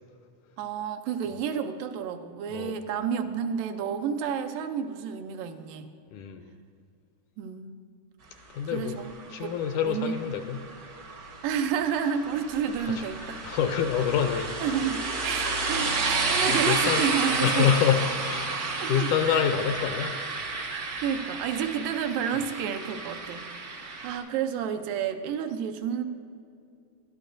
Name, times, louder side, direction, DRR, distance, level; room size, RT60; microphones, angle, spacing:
voice 1, 0.6-5.9 7.4-7.8 8.6-9.1 9.4-9.6 9.9-10.2 11.4-13.4 14.6-17.7 18.5-19.4 20.7-26.0, right 8 dB, 85° right, 7 dB, 2.3 m, -30 dB
voice 2, 6.1-6.5 8.5-9.0 9.3-10.6 13.0-13.1 13.5-14.5 16.7-17.1 17.4-20.2, left 8 dB, 80° left, 7 dB, 1.9 m, -26 dB
sound 1, 9.2-24.2, right 3 dB, 60° right, 0.9 m, -31 dB
19.0 x 12.0 x 2.6 m, 2.4 s
omnidirectional pair, 3.9 m